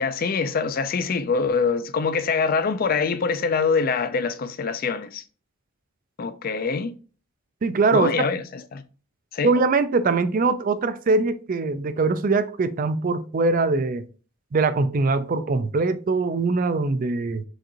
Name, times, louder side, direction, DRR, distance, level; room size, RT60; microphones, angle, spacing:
voice 1, 0.0-5.2 6.2-6.9 7.9-8.8 9.3-9.5, left 5 dB, 45° left, 0.4 m, -24 dB
voice 2, 7.6-8.1 9.4-14.0 14.5-17.4, right 3 dB, 45° right, 0.4 m, -22 dB
6.1 x 2.5 x 2.9 m
head